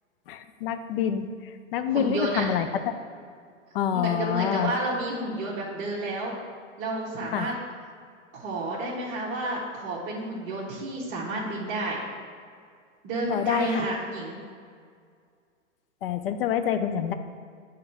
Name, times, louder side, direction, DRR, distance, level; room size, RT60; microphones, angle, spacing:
voice 1, 0.3-2.9 3.7-4.7 7.3-7.5 13.3-13.9 16.0-17.1, left 9 dB, 45° left, 9 dB, 0.6 m, -27 dB
voice 2, 1.9-2.5 3.9-6.3 6.8-7.5 8.3-12.0 13.0-14.4, right 2 dB, 35° right, -6 dB, 1.1 m, -30 dB
7.9 x 3.2 x 5.8 m, 2.1 s
hypercardioid pair, 135°, 39 cm